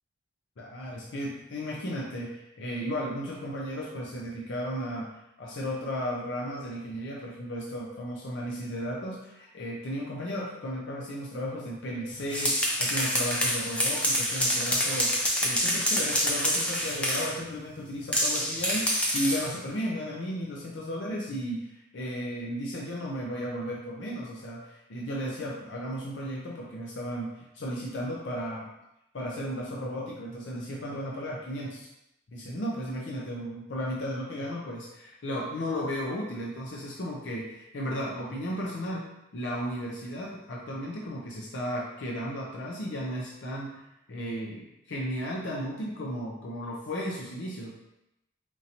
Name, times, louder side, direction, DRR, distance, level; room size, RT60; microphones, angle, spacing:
voice 1, 0.6-5.1 5.4-28.7 29.1-31.9 32.3-39.1 39.3-43.8 44.1-47.7, equal, 65° left, -3 dB, 0.5 m, -34 dB
sound 1, 12.1-17.4 18.1-19.5, equal, 5° left, 0.4 m, -27 dB
4.4 x 2.6 x 2.8 m, 0.87 s
head